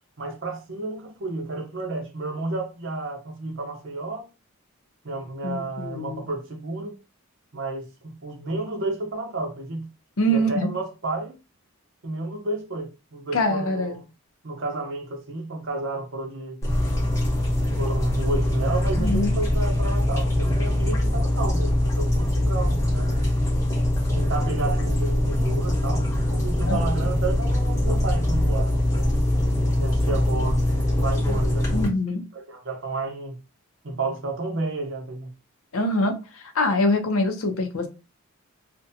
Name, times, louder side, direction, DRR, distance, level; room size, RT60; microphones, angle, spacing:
voice 1, 0.2-4.3 5.0-7.0 7.5-9.9 10.3-11.4 12.0-14.0 14.4-16.6 17.8-23.2 24.1-29.1 29.8-30.6 30.9-31.9 32.3-33.4 33.8-35.3, right 2 dB, 60° right, 0.7 m, -31 dB
voice 2, 5.4-6.3 10.2-10.7 13.3-14.0 19.0-19.3 26.7-26.8 31.7-32.2 35.7-37.9, left 1 dB, 75° left, 0.6 m, -24 dB
sound 1, 16.6-31.9, left 1 dB, 15° left, 0.8 m, -23 dB
2.6 x 2.2 x 2.6 m
head